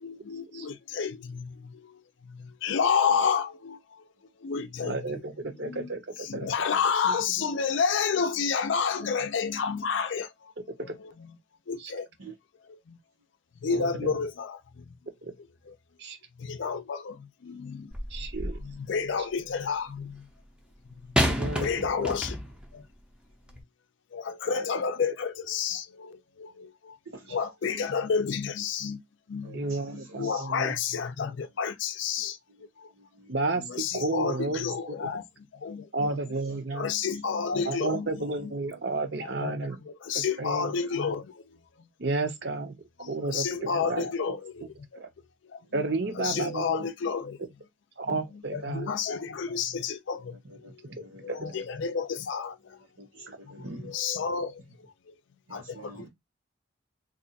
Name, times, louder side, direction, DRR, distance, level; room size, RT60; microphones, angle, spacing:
voice 1, 0.0-2.0 2.3-4.0 4.4-5.0 5.6-5.9 6.2-10.5 10.8-11.4 11.7-12.1 12.7-13.0 13.6-14.9 15.7-15.8 16.4-17.9 18.6-20.3 21.3-22.4 22.7-22.8 24.1-27.0 27.3-29.0 29.3-32.4 32.8-32.9 33.6-36.1 36.7-38.5 39.2-41.4 41.8-41.9 43.0-44.7 45.5-45.8 46.2-47.4 48.1-50.4 50.7-50.8 51.2-52.8 53.2-55.1 55.5-56.1, left 6 dB, 65° left, 0.4 m, -31 dB
voice 2, 4.8-6.5 7.0-7.2 9.0-9.1 11.8-11.9 13.7-14.1 15.2-15.3 16.0-16.2 18.1-18.6 21.2-22.1 24.5-24.6 29.5-30.7 33.3-35.0 35.9-36.9 37.6-39.8 40.1-40.7 42.0-42.8 43.1-44.3 45.0-45.1 45.7-46.8 48.0-48.9 51.3-51.4, right 3 dB, 55° right, 0.7 m, -32 dB
sound 1, 17.9-18.7 21.2-22.7 23.5-23.6, equal, 5° right, 0.5 m, -29 dB
voice 3, 29.4-30.4 33.0-33.3 36.0-36.2 36.5-36.6 43.0-43.1 48.6-48.7 50.5-51.6 53.0-53.9 55.5-56.1, right 2 dB, 90° right, 1.0 m, -46 dB
2.5 x 2.4 x 4.0 m
head